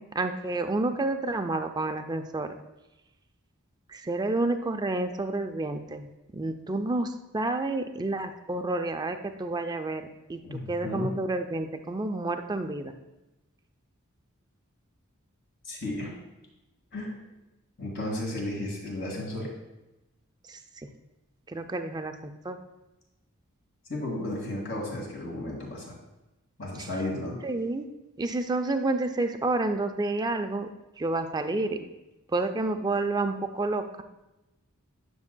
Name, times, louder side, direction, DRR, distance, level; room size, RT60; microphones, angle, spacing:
voice 1, 0.0-2.6 3.9-12.9 20.5-20.6 21.5-22.6 26.8-26.9 27.4-27.9 28.2-30.7 31.0-31.9 32.3-34.0, right 2 dB, 20° right, 7 dB, 0.4 m, -30 dB
voice 2, 10.4-11.2 15.6-16.2 16.9-17.2 17.8-19.5 23.9-25.9 26.6-27.4, left 1 dB, 50° left, -2 dB, 1.9 m, -33 dB
9.7 x 6.3 x 2.2 m, 0.98 s
head